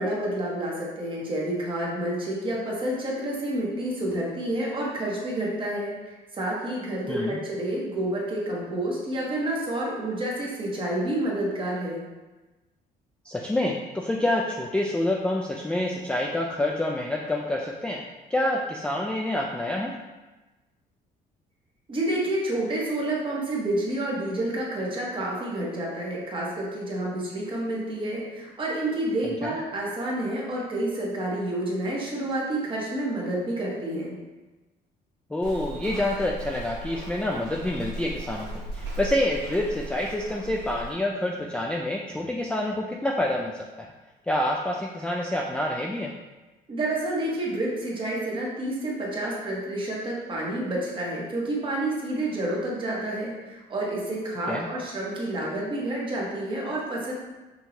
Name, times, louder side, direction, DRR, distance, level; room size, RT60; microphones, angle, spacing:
voice 1, 0.0-12.0 21.9-34.1 46.7-57.1, right 1 dB, 30° right, -4 dB, 1.3 m, -29 dB
voice 2, 7.1-7.4 13.3-18.0 18.3-19.9 29.2-29.5 35.3-38.5 38.7-43.9 44.3-46.1 54.5-54.7, left 1 dB, 5° left, -1 dB, 0.3 m, -27 dB
Walk footsteps, 35.4-40.9, right 2 dB, 85° right, 1.2 m, -37 dB
5.7 x 2.7 x 2.9 m, 1.2 s
cardioid pair, 110°, 17 cm